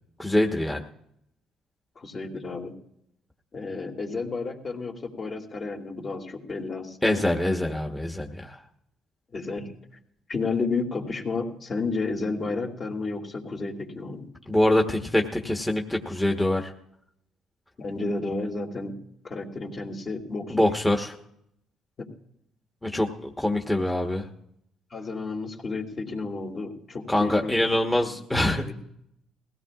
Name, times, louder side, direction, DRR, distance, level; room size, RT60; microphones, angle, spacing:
voice 1, 0.2-0.8 7.0-8.6 14.5-16.7 20.5-21.2 22.8-24.3 27.1-28.7, left 1 dB, 10° left, 2 dB, 1.3 m, -24 dB
voice 2, 2.0-2.7 3.5-7.2 9.3-9.8 10.3-14.3 17.8-19.0 19.2-20.7 22.0-22.1 24.9-27.5 28.1-28.2 28.6-28.7, left 3 dB, 45° left, 1 dB, 2.6 m, -32 dB
21.0 x 16.5 x 2.5 m, 0.77 s
supercardioid pair, 80°, 0 cm